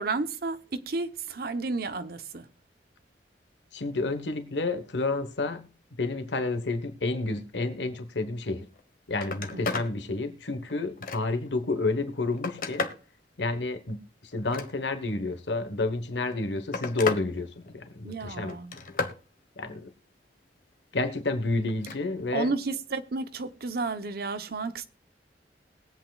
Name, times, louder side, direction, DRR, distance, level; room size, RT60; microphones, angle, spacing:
voice 1, 0.0-2.5 9.5-9.8 18.0-18.8 22.3-24.8, right 3 dB, 60° right, 0.9 m, -32 dB
voice 2, 3.7-5.7 6.0-8.7 9.1-12.8 13.4-18.6 19.6-19.9 20.9-22.5, left 3 dB, 85° left, 1.2 m, -30 dB
Telephone, 8.7-8.8 9.1-9.9 10.4-11.5 12.1-13.1 14.3-15.1 16.1-17.3 17.6-18.1 18.5-19.2 21.7-22.0 23.4-23.5, left 4 dB, 55° left, 1.3 m, -34 dB
21.0 x 8.2 x 2.4 m
head